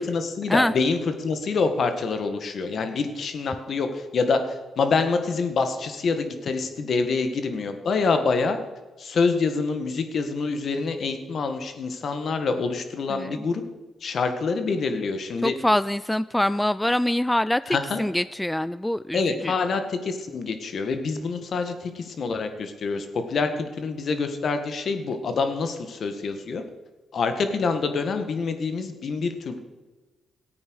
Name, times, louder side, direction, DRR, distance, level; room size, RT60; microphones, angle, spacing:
voice 1, 0.0-8.6 9.0-13.6 14.0-15.5 17.7-18.0 19.1-26.6 27.1-29.6, left 4 dB, 60° left, 7 dB, 1.8 m, -26 dB
voice 2, 13.1-13.4 15.4-19.5, left 1 dB, 10° left, 17 dB, 0.3 m, -24 dB
14.5 x 8.7 x 6.4 m, 1.2 s
cardioid pair, 70°, 0 cm